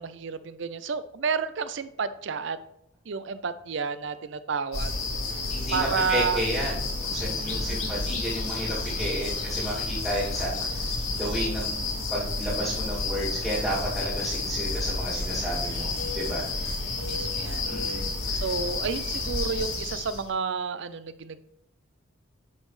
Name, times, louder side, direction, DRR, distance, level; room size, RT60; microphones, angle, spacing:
voice 1, 0.0-2.6 3.1-4.9 5.7-6.4 7.4-8.1 10.4-10.7 15.7-16.2 17.0-17.8 18.3-21.4, right 5 dB, 60° right, 14 dB, 0.5 m, -31 dB
sound 1, 4.7-20.3, left 3 dB, 85° left, 2.0 m, -30 dB
voice 2, 5.5-10.8 11.2-16.4 17.7-18.4, equal, 15° right, -8 dB, 2.2 m, -32 dB
11.5 x 5.3 x 3.2 m, 0.77 s
head